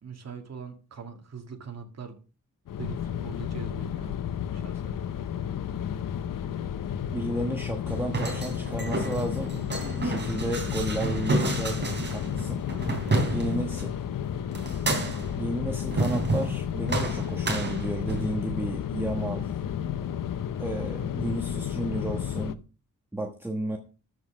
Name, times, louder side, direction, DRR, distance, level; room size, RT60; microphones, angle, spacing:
voice 1, 0.0-2.2 2.8-4.2 4.5-5.0 12.7-13.3, right 6 dB, 55° right, 2.3 m, -42 dB
sound 1, 2.7-22.5, left 9 dB, 85° left, 0.8 m, -32 dB
voice 2, 7.1-9.7 9.9-12.6 13.3-13.9 15.4-19.5 20.6-22.6 23.1-23.8, right 1 dB, 5° right, 1.2 m, -33 dB
sound 2, 7.9-13.9 14.5-15.4 15.9-16.6 16.9-18.3, right 2 dB, 35° right, 3.2 m, -30 dB
13.5 x 5.4 x 6.3 m
wide cardioid pair, 175°, 32 cm